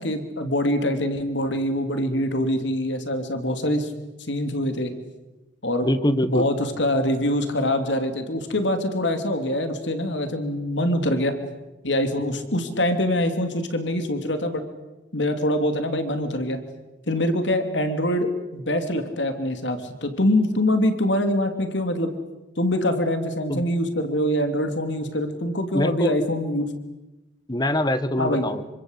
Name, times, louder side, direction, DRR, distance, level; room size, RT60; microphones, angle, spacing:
voice 1, 0.0-3.9 4.3-4.9 5.6-5.9 6.2-11.3 11.8-14.6 15.1-16.6 17.1-22.1 22.6-26.7 28.2-28.4, left 1 dB, 85° left, 7 dB, 3.1 m, -24 dB
voice 2, 5.8-6.4 23.5-23.6 25.7-26.2 27.5-28.6, left 1 dB, 20° left, 12 dB, 1.3 m, -23 dB
27.0 x 24.5 x 8.2 m, 1.0 s
head